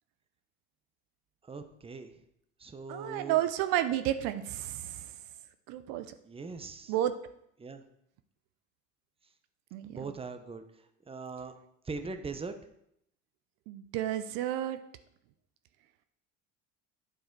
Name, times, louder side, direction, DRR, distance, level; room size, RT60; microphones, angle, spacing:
voice 1, 1.5-2.1 2.6-3.4 6.2-6.9 7.6-7.8 9.9-10.6 11.1-11.5 11.9-12.5, right 4 dB, 15° right, 8 dB, 0.8 m, -40 dB
voice 2, 2.9-5.1 5.7-6.1 6.9-7.1 9.7-10.1 13.7-14.8, right 12 dB, 70° right, 11 dB, 0.6 m, -31 dB
8.9 x 4.8 x 4.6 m, 0.75 s
hypercardioid pair, 75°, 38 cm